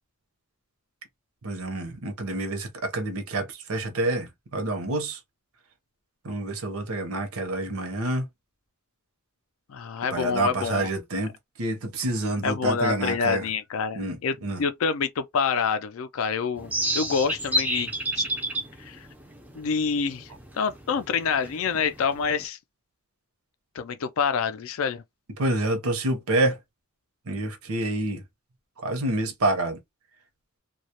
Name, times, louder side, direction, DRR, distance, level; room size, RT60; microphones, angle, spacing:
voice 1, 1.4-5.2 6.2-8.3 10.1-11.3 11.6-13.5 13.9-14.6 25.4-26.6 27.3-28.2 28.8-29.8, right 2 dB, 75° right, 0.7 m, -28 dB
voice 2, 9.7-10.9 12.4-18.2 18.8-19.1 19.5-20.3 20.6-22.6 23.8-25.0, left 5 dB, 65° left, 0.4 m, -27 dB
sound 1, 16.6-22.4, right 1 dB, 5° right, 0.3 m, -30 dB
2.2 x 2.0 x 2.8 m
head